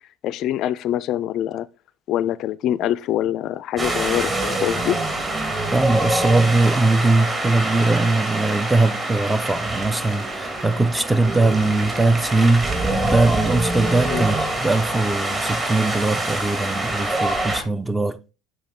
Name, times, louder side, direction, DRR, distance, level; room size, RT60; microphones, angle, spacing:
voice 1, 0.2-1.7 2.1-5.0 14.1-14.2, left 12 dB, 55° left, 0.3 m, -24 dB
Wind, 3.8-17.6, right 2 dB, 25° right, 2.1 m, -25 dB
voice 2, 5.7-18.2, right 2 dB, 10° right, 0.5 m, -20 dB
7.0 x 4.9 x 3.7 m
hypercardioid pair, 75°, 0 cm